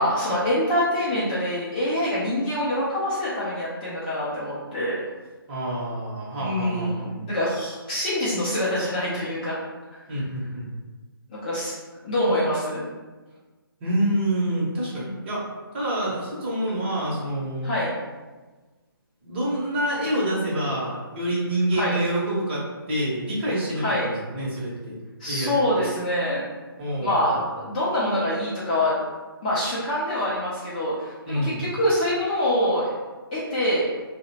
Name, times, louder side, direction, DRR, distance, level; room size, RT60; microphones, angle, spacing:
voice 1, 0.0-5.0 6.4-9.5 9.9-10.0 11.3-11.7 12.0-12.8 15.0-15.1 17.6-18.0 21.8-21.9 23.8-24.1 25.2-26.4 27.0-29.0 29.4-32.9 33.3-33.9, left 1 dB, 20° left, -9 dB, 0.5 m, -25 dB
voice 2, 5.5-7.1 10.1-10.7 13.8-15.4 15.7-17.7 19.2-25.0 25.3-25.7 26.8-27.4 31.2-31.6, right 1 dB, 30° right, -7 dB, 0.8 m, -27 dB
2.7 x 2.1 x 2.7 m, 1.3 s
figure-of-eight pair, 145°, 13 cm